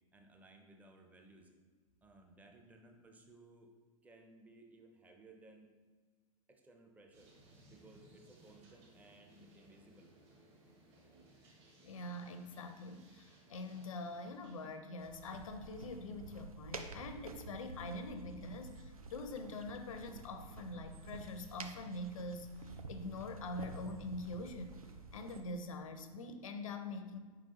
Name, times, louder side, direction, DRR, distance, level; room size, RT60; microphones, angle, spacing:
voice 1, 0.1-1.5 2.0-3.7 4.0-5.8 6.5-7.3 7.7-10.1, right 2 dB, 10° right, 3 dB, 0.4 m, -60 dB
sound 1, 7.1-14.8, right 2 dB, 55° right, 1.4 m, -63 dB
voice 2, 11.8-22.5 22.9-24.8 25.1-27.2, left 2 dB, 70° left, 8 dB, 0.5 m, -44 dB
sound 2, 15.0-25.4, right 3 dB, 85° right, 0.4 m, -50 dB
4.5 x 3.8 x 2.8 m, 1.4 s
figure-of-eight pair, 90°, 18 cm